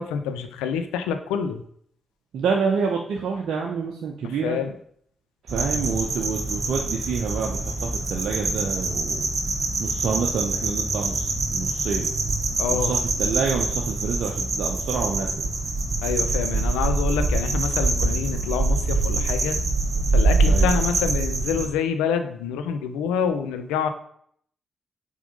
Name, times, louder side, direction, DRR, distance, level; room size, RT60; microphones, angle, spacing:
voice 1, 0.0-1.6 4.2-4.7 12.6-12.9 16.0-19.6 20.1-23.9, left 7 dB, 85° left, 8 dB, 0.5 m, -27 dB
voice 2, 2.3-4.6 5.4-9.3 9.8-12.1 12.7-15.5 20.4-20.8, right 5 dB, 70° right, 0 dB, 0.8 m, -28 dB
sound 1, 5.5-21.7, right 3 dB, 50° right, 2.2 m, -24 dB
5.1 x 4.9 x 5.1 m, 0.65 s
hypercardioid pair, 40°, 0 cm